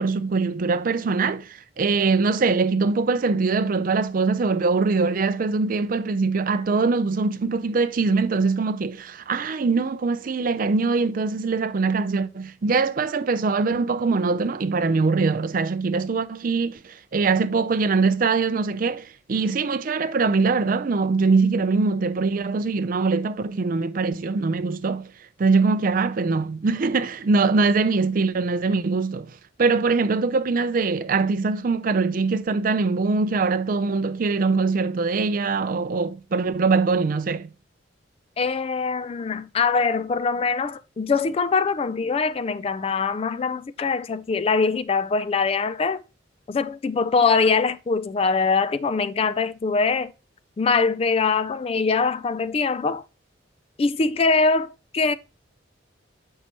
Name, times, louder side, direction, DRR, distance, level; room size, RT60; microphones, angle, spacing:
voice 1, 0.0-25.1 25.4-37.5, right 4 dB, 45° right, 0.4 m, -22 dB
voice 2, 38.4-46.0 46.5-50.1 50.6-53.0 53.8-55.1, left 4 dB, 30° left, 0.3 m, -23 dB
7.3 x 5.5 x 2.9 m
head